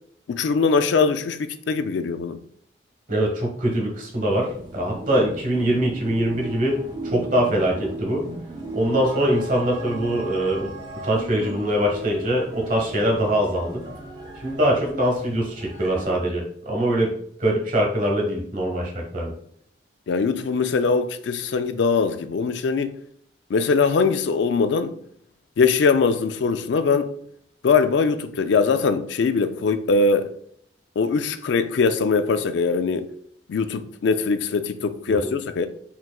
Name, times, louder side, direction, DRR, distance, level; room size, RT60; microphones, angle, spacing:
voice 1, 0.3-2.4 20.1-22.9 23.5-24.9 25.6-27.1 27.6-30.3 31.0-33.1 33.5-35.7, left 4 dB, 70° left, 0.4 m, -21 dB
voice 2, 3.1-8.2 8.7-10.7 11.0-13.8 14.3-17.1 17.4-19.3 35.1-35.3, right 1 dB, 45° right, 1.1 m, -23 dB
sound 1, 4.3-16.2, right 2 dB, 25° right, 0.8 m, -37 dB
4.5 x 3.7 x 2.3 m
head